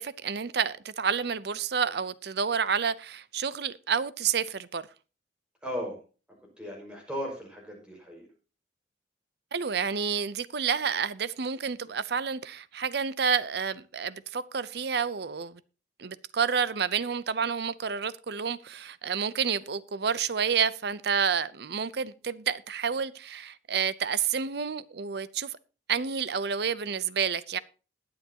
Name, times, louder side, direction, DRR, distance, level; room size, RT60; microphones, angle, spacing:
voice 1, 0.0-4.8 9.5-15.6 16.0-25.5 25.9-27.6, right 6 dB, 60° right, 0.6 m, -29 dB
voice 2, 5.6-6.0 6.6-8.3, equal, 5° right, 5.4 m, -36 dB
20.5 x 7.8 x 2.9 m
head